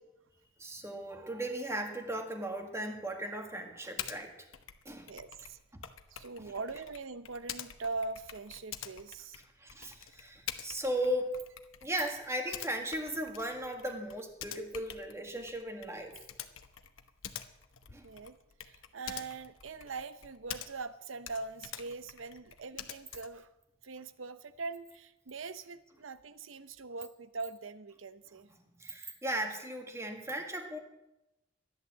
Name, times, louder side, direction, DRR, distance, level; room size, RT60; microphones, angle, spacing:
voice 1, 0.6-4.3 4.9-5.1 5.7-5.8 9.6-11.4 11.8-16.2 17.9-18.1 28.8-30.8, right 1 dB, 15° right, 3 dB, 1.8 m, -37 dB
Typing, 4.0-4.2 4.5-21.0 21.2-23.4, left 9 dB, 85° left, 1.0 m, -47 dB
voice 2, 5.1-5.6 6.1-9.4 18.0-18.4 18.6-23.5 23.8-28.5, right 3 dB, 80° right, 13 dB, 0.8 m, -42 dB
14.0 x 10.5 x 7.4 m, 0.93 s
head